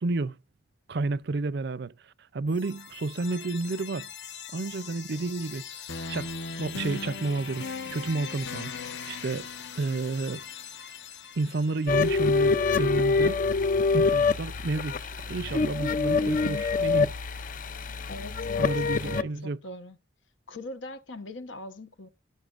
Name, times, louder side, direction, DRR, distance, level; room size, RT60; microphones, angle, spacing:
voice 1, 0.0-0.4 0.9-1.9 2.3-4.1 4.5-5.7 6.1-6.3 6.6-8.7 9.1-9.5 9.8-10.4 11.4-13.4 13.9-15.0 15.3-17.1 18.6-19.6, right 3 dB, 60° right, 0.5 m, -30 dB
sound 1, 2.5-12.4, left 5 dB, 65° left, 1.1 m, -39 dB
sound 2, 11.9-19.2, left 4 dB, 45° left, 0.5 m, -25 dB
voice 2, 16.2-17.0 18.1-20.0 20.5-22.1, left 1 dB, 80° left, 1.2 m, -41 dB
17.0 x 6.7 x 2.5 m
head